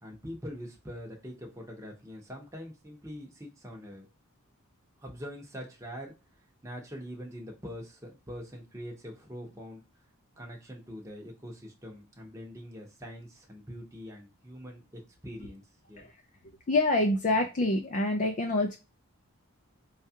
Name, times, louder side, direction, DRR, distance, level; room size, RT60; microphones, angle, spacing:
voice 1, 0.0-4.1 5.0-6.1 6.6-9.8 10.4-15.6 15.9-16.0, equal, 15° right, 0 dB, 0.8 m, -43 dB
voice 2, 16.7-18.8, left 2 dB, 35° left, 3 dB, 0.4 m, -26 dB
4.5 x 2.4 x 2.7 m, 0.29 s
head